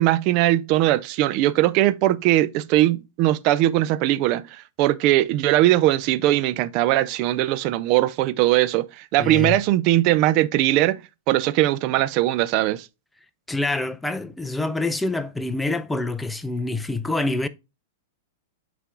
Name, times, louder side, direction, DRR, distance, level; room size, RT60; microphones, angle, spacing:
voice 1, 0.0-11.0 11.3-12.9, right 15 dB, 45° right, 0.5 m, -20 dB
voice 2, 9.2-9.6 13.5-17.5, left 2 dB, 5° left, 0.5 m, -26 dB
8.1 x 3.4 x 3.8 m
hypercardioid pair, 115°, 0 cm